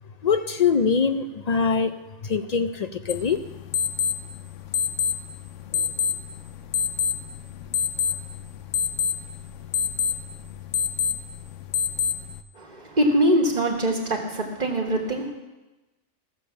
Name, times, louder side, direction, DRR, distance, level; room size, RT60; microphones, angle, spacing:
voice 1, 0.2-1.9 2.2-3.4, left 6 dB, 60° left, 9 dB, 0.4 m, -23 dB
sound 1, 3.1-12.4, left 7 dB, 85° left, 1.0 m, -28 dB
voice 2, 12.6-15.3, right 1 dB, 35° right, 0 dB, 1.5 m, -23 dB
15.0 x 6.9 x 7.0 m, 1.1 s
omnidirectional pair, 1.3 m